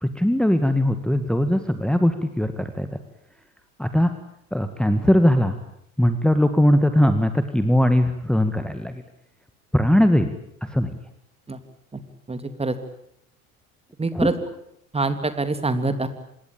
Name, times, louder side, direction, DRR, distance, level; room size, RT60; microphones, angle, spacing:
voice 1, 0.0-2.9 3.8-4.1 4.5-5.6 6.0-9.0 9.7-10.3 10.6-10.9 14.1-14.3, equal, ahead, 8 dB, 1.9 m, -20 dB
voice 2, 12.3-12.7 14.0-14.3 14.9-16.1, right 3 dB, 15° right, 10 dB, 3.0 m, -25 dB
26.0 x 21.0 x 8.8 m, 0.73 s
figure-of-eight pair, 70°, 44 cm